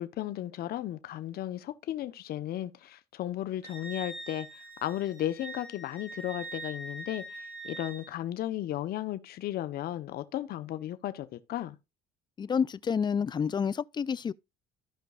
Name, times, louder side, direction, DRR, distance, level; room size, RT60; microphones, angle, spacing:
voice 1, 0.0-11.8, left 13 dB, 55° left, 0.8 m, -35 dB
Wind instrument woodwind instrument, 3.6-8.1, right 2 dB, 65° right, 6.0 m, -43 dB
voice 2, 12.4-14.3, left 6 dB, 25° left, 0.4 m, -29 dB
15.0 x 5.2 x 2.3 m
supercardioid pair, 90°, 18 cm